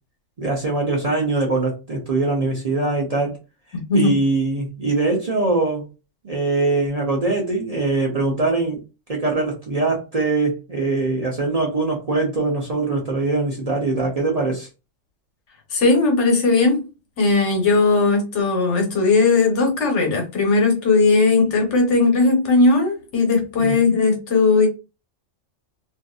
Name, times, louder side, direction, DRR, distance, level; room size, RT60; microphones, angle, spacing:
voice 1, 0.4-3.4 3.9-5.9 6.2-8.8 9.1-14.7 23.6-24.0, right 3 dB, 40° right, 0.7 m, -22 dB
voice 2, 3.7-4.1 15.7-16.8 17.2-24.7, left 3 dB, 70° left, 1.2 m, -18 dB
2.6 x 2.5 x 2.3 m
omnidirectional pair, 1.3 m